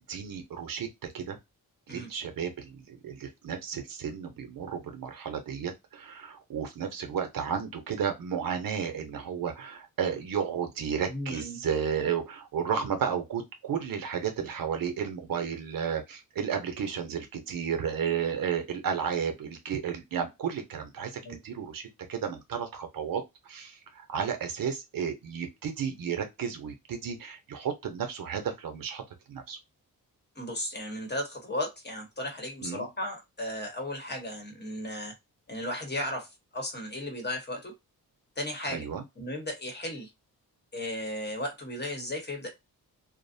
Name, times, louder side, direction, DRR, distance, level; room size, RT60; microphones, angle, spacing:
voice 1, 0.1-0.9 1.1-1.4 1.9-21.1 21.4-21.8 22.1-23.2 23.5-29.0 29.3-29.6 32.6-32.9 38.7-39.0, right 7 dB, 70° right, 0.7 m, -33 dB
voice 2, 11.1-11.6 21.2-21.4 30.4-35.1 35.5-37.7 38.4-38.9 39.2-40.1 40.7-42.5, left 1 dB, 30° left, 0.9 m, -35 dB
2.5 x 2.1 x 2.6 m
wide cardioid pair, 125°, 36 cm